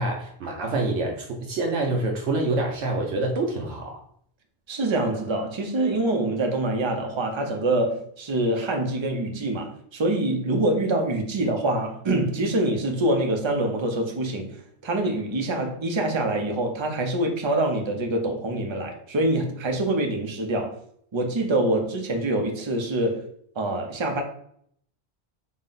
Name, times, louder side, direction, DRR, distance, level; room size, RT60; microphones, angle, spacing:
voice 1, 0.0-4.0, right 2 dB, 75° right, 0.9 m, -26 dB
voice 2, 4.7-14.6 14.8-20.8 21.1-23.2 23.6-24.2, right 1 dB, 35° right, 0.5 m, -25 dB
4.1 x 2.1 x 3.8 m
omnidirectional pair, 1.2 m